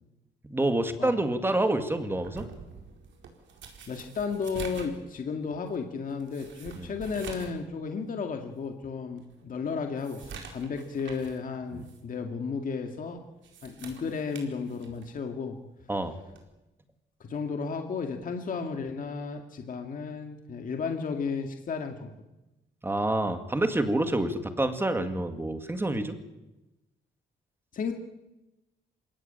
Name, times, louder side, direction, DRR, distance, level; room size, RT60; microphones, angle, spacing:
voice 1, 0.4-2.5 6.8-6.9 11.7-11.8 15.9-16.2 22.8-26.2, right 1 dB, 10° right, 8 dB, 2.0 m, -27 dB
sound 1, 2.2-7.6 8.0-8.1 8.6-8.7 9.2-11.4 11.8-12.0 13.2-15.2 16.3-16.5, right 6 dB, 70° right, 4.7 m, -46 dB
voice 2, 3.9-13.2 13.6-15.6 17.2-22.1 27.7-27.9, left 5 dB, 45° left, 4 dB, 2.1 m, -33 dB
27.5 x 17.5 x 8.9 m, 0.99 s
wide cardioid pair, 175°, 20 cm